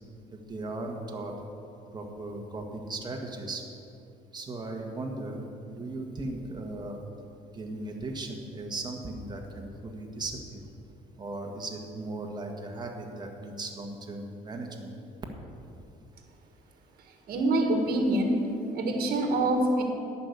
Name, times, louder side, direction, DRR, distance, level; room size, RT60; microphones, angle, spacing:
voice 1, 0.3-1.4 1.9-3.6 4.3-7.0 7.5-10.6 11.2-14.9, right 2 dB, 25° right, 1 dB, 1.6 m, -37 dB
voice 2, 17.3-18.5 18.7-19.8, right 1 dB, 60° right, 3 dB, 1.6 m, -25 dB
11.5 x 5.8 x 8.2 m, 2.8 s
cardioid pair, 110°, 17 cm